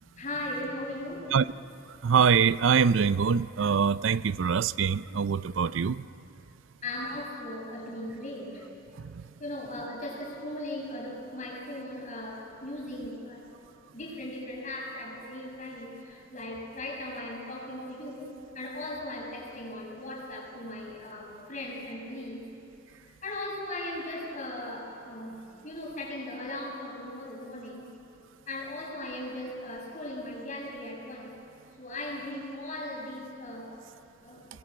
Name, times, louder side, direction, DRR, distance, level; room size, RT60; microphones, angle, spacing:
voice 1, 0.1-1.4 6.8-8.7 9.4-13.6 13.9-22.5 23.0-27.9 28.5-31.4 31.8-33.8 34.2-34.4, left 1 dB, 40° left, -3 dB, 7.2 m, -38 dB
voice 2, 1.9-6.1 9.0-9.2, right 6 dB, 85° right, 17 dB, 0.5 m, -24 dB
27.0 x 21.5 x 7.6 m, 3.0 s
head